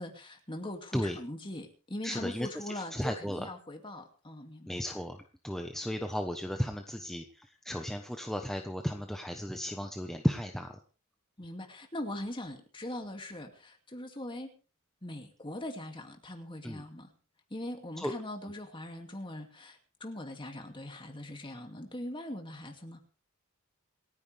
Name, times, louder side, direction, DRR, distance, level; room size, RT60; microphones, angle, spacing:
voice 1, 0.0-4.8 11.4-14.5 15.0-17.1 17.5-23.0, left 1 dB, 20° left, 4 dB, 2.6 m, -41 dB
voice 2, 2.0-3.5 4.7-10.8 16.6-16.8 18.0-18.1, equal, ahead, 4 dB, 1.1 m, -35 dB
28.0 x 9.9 x 3.5 m, 0.36 s
head